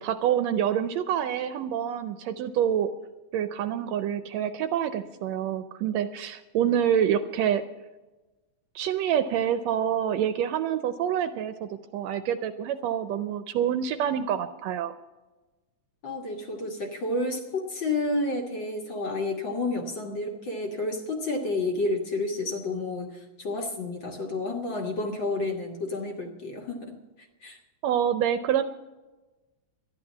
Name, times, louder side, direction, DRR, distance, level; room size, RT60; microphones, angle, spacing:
voice 1, 0.0-2.9 3.3-7.6 8.7-14.9 27.8-28.6, right 9 dB, 75° right, 11 dB, 1.7 m, -27 dB
voice 2, 16.0-27.0 27.4-27.6, left 2 dB, 45° left, 2 dB, 1.9 m, -30 dB
12.5 x 10.5 x 7.2 m, 1.1 s
omnidirectional pair, 3.4 m